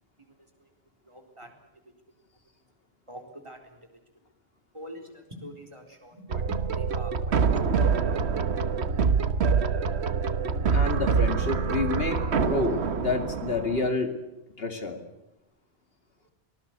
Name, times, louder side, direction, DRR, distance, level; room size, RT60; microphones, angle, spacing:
voice 1, 1.1-1.5 3.1-3.8 4.7-7.4 7.9-8.1 11.6-11.7, equal, 30° right, 5 dB, 4.2 m, -44 dB
sound 1, 6.3-13.9, right 5 dB, 85° right, 1.4 m, -25 dB
voice 2, 10.7-14.1 14.6-15.0, left 3 dB, 65° left, 6 dB, 2.7 m, -29 dB
23.5 x 19.5 x 8.1 m, 0.93 s
omnidirectional pair, 1.1 m